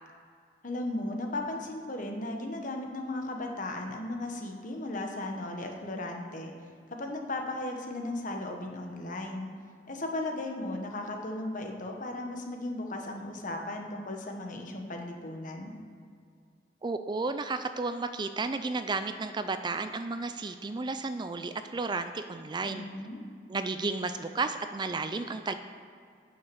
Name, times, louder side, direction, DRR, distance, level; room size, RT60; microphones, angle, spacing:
voice 1, 0.6-6.5 6.9-9.5 9.9-15.7 22.6-23.2, left 2 dB, 50° left, 2 dB, 1.3 m, -36 dB
voice 2, 16.8-22.8 23.5-25.5, right 3 dB, 25° right, 9 dB, 0.4 m, -33 dB
8.8 x 6.4 x 7.1 m, 2.3 s
head